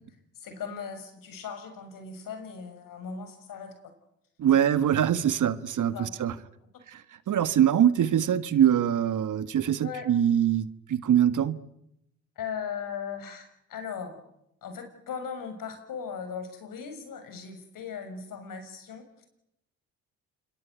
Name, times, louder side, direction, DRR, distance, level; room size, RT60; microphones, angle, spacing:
voice 1, 0.4-3.9 4.5-4.6 5.9-6.1 9.8-10.1 12.3-14.2 14.6-19.3, left 6 dB, 70° left, 6.6 m, -38 dB
voice 2, 4.4-6.3 6.9-11.6, right 10 dB, 60° right, 1.6 m, -23 dB
27.0 x 22.5 x 9.5 m
hypercardioid pair, 50°, 35 cm